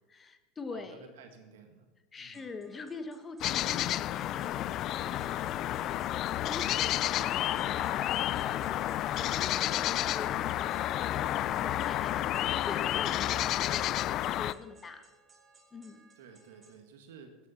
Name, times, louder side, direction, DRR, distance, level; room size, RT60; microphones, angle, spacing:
voice 1, 0.1-1.1 2.1-15.1 15.7-16.0, left 4 dB, 25° left, 9 dB, 1.3 m, -45 dB
voice 2, 0.7-1.9 2.2-2.5 11.2-11.7 16.2-17.4, right 6 dB, 80° right, 6 dB, 1.9 m, -53 dB
sound 1, 2.3-16.7, right 2 dB, 25° right, 2.7 m, -63 dB
sound 2, 3.4-14.5, left 13 dB, 50° left, 0.4 m, -30 dB
14.0 x 9.8 x 4.4 m, 1.2 s
hypercardioid pair, 100°, 0 cm